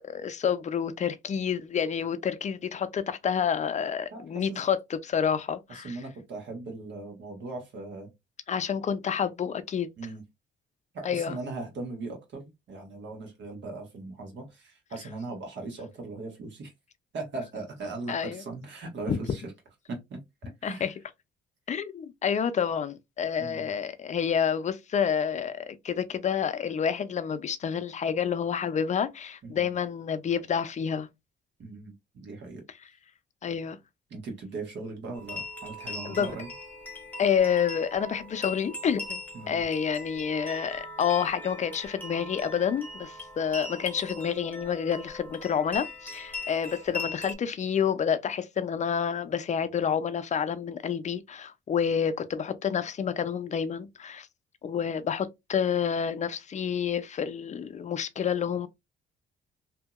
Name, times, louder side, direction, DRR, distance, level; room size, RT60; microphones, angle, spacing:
voice 1, 0.0-6.0 8.5-9.9 11.0-11.4 18.1-18.4 19.1-19.2 20.6-20.9 21.7-31.1 33.4-33.8 36.1-36.3 37.2-39.2 39.5-54.3 54.6-58.7, left 7 dB, 35° left, 0.4 m, -29 dB
voice 2, 4.1-4.6 5.7-8.1 10.0-10.2 10.9-12.4 12.7-16.7 17.1-19.4 19.9-20.2 20.6-20.9 23.4-23.7 29.4-29.7 31.6-32.6 34.1-36.5 39.3-39.6, right 3 dB, 65° right, 1.4 m, -39 dB
sound 1, 35.1-47.3, left 2 dB, 10° left, 1.1 m, -40 dB
2.7 x 2.7 x 2.3 m
cardioid pair, 90°, 20 cm